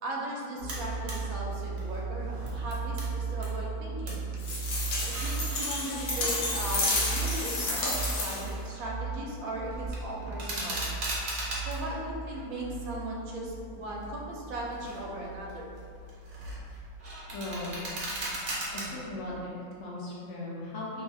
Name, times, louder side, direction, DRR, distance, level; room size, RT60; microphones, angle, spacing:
voice 1, 0.0-4.2 5.1-10.8 11.6-15.7, right 1 dB, 80° right, -3 dB, 1.0 m, -38 dB
sound 1, 0.6-19.3, right 4 dB, 45° left, 1.3 m, -38 dB
sound 2, 0.7-1.2 1.6-3.5 3.8-4.3 4.9-5.8 6.5-8.6 8.9-9.3 9.6-11.8 12.3-13.2 13.8-14.0 14.6-15.1 15.5-18.8, right 1 dB, 60° right, 0.9 m, -39 dB
sound 3, 4.4-8.6, left 2 dB, 85° left, 1.1 m, -31 dB
voice 2, 17.3-17.8 18.7-21.0, left 2 dB, 70° left, -5 dB, 0.9 m, -38 dB
3.0 x 2.3 x 2.6 m, 2.4 s
omnidirectional pair, 1.4 m